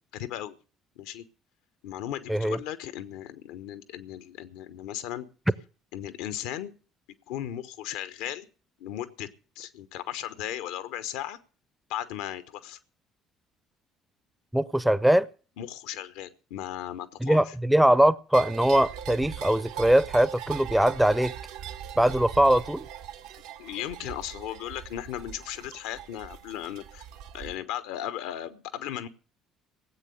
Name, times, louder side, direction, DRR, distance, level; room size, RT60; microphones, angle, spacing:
voice 1, 0.1-0.5 1.0-1.3 1.8-5.3 5.9-6.7 7.3-8.5 8.8-9.3 9.6-11.4 11.9-12.8 15.6-17.5 23.6-27.1 27.3-29.1, left 11 dB, 65° left, 1.1 m, -36 dB
voice 2, 14.5-15.3 17.2-21.3 22.0-22.8, right 1 dB, 5° right, 0.8 m, -21 dB
sound 1, 18.3-27.6, right 9 dB, 65° right, 1.2 m, -40 dB
17.5 x 8.3 x 6.7 m
figure-of-eight pair, 50°, 0 cm